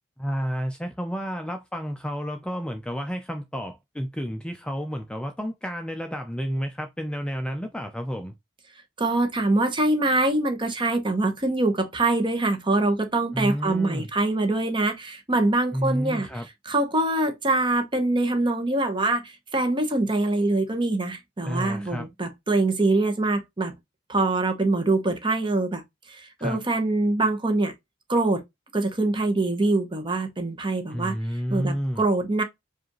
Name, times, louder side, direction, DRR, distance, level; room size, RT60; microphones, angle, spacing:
voice 1, 0.2-8.3 13.3-14.1 15.7-16.5 21.4-22.1 26.4-26.6 30.9-32.1, equal, 5° left, 0.4 m, -30 dB
voice 2, 9.0-16.3 16.7-23.7 24.1-25.8 26.1-27.7 28.1-28.4 28.7-31.2 31.5-32.4, right 2 dB, 25° right, 0.9 m, -24 dB
4.9 x 2.5 x 3.0 m
head